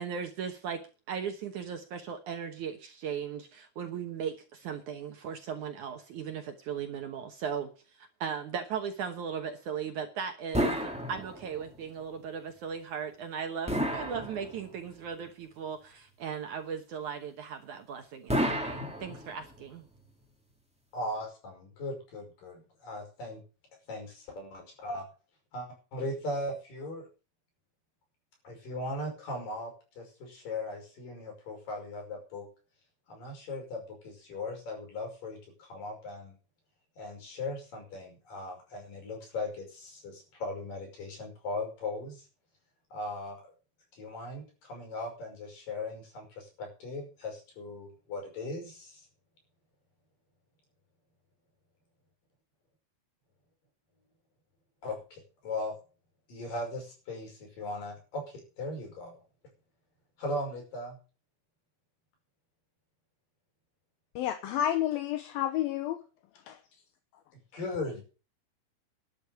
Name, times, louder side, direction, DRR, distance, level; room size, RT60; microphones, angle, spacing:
voice 1, 0.0-7.7 7.9-19.9, right 7 dB, 65° right, 6 dB, 2.2 m, -37 dB
sound 1, 10.5-11.7 13.7-14.9 18.3-19.6, equal, ahead, 1.5 m, -31 dB
voice 2, 20.9-23.4 23.9-25.0 25.5-27.1 28.4-29.7 30.0-32.5 33.1-36.4 37.0-42.3 42.9-43.4 43.9-49.0 54.8-55.7 56.3-59.2 60.2-61.0 67.5-68.0, left 2 dB, 55° left, 2 dB, 7.1 m, -38 dB
voice 3, 64.2-66.0 66.5-66.6, left 11 dB, 75° left, 9 dB, 2.6 m, -30 dB
12.0 x 8.5 x 8.1 m, 0.36 s
omnidirectional pair, 4.6 m